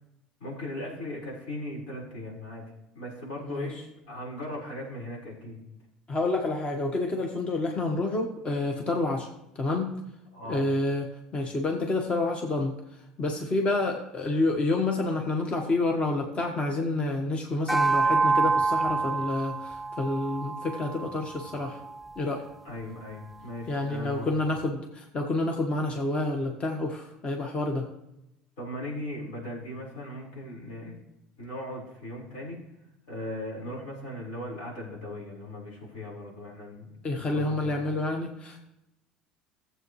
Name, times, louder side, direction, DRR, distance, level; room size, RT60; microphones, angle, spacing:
voice 1, 0.4-2.6 2.9-3.8 4.1-5.6 10.3-10.6 22.6-24.3 28.6-30.9 31.4-32.6 33.1-37.8, left 1 dB, 80° left, -4 dB, 4.7 m, -38 dB
voice 2, 6.1-9.3 9.6-9.9 10.5-12.7 13.2-21.8 22.2-22.5 23.7-27.9 37.0-38.7, left 2 dB, 35° left, 2 dB, 1.4 m, -28 dB
sound 1, 17.7-22.3, right 4 dB, 5° right, 0.4 m, -27 dB
15.5 x 7.9 x 3.2 m, 0.89 s
supercardioid pair, 80°, 3 cm